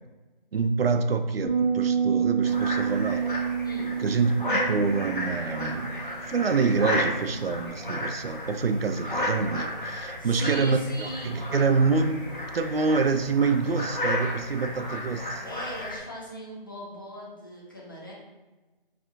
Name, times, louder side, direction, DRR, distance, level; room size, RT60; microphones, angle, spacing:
voice 1, 0.5-3.3 4.0-6.0 6.3-12.2 12.5-15.4, right 4 dB, 85° right, 9 dB, 0.5 m, -26 dB
sound 1, 1.4-7.7, right 7 dB, 45° right, 1.0 m, -29 dB
sound 2, 2.4-16.0, left 1 dB, 60° left, 1.3 m, -33 dB
voice 2, 3.6-3.9 10.2-11.4 15.4-18.1, equal, 20° left, -5 dB, 0.7 m, -39 dB
4.8 x 4.3 x 2.4 m, 1.1 s
figure-of-eight pair, 170°, 29 cm